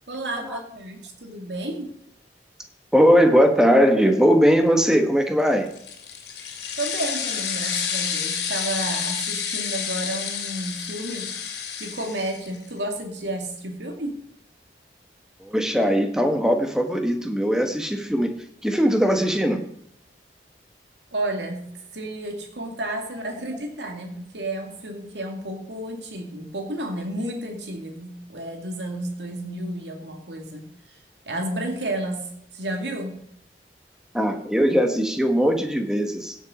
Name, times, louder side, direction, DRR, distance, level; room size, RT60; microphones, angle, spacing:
voice 1, 0.1-1.9 6.8-11.3 11.8-14.2 21.1-21.7 21.9-30.7 31.3-32.3 32.5-33.2, right 1 dB, 85° right, 3 dB, 2.5 m, -31 dB
voice 2, 2.9-5.7 15.4-18.3 18.6-19.6 34.1-36.4, equal, 5° right, 5 dB, 1.3 m, -19 dB
sound 1, 5.7-12.6, left 7 dB, 80° left, 2.7 m, -29 dB
16.5 x 7.1 x 5.0 m, 0.72 s
head